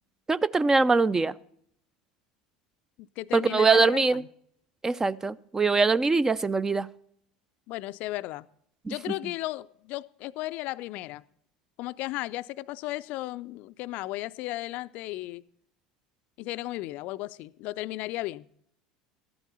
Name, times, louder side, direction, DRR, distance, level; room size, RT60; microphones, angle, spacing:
voice 1, 0.3-1.3 3.3-4.2 4.8-6.9 8.9-9.0, right 4 dB, 15° right, 0.4 m, -23 dB
voice 2, 3.0-4.3 7.7-8.5 8.9-11.2 11.8-15.4 16.4-18.5, left 18 dB, 50° left, 0.4 m, -35 dB
13.5 x 11.5 x 4.1 m
figure-of-eight pair, 70°, 3 cm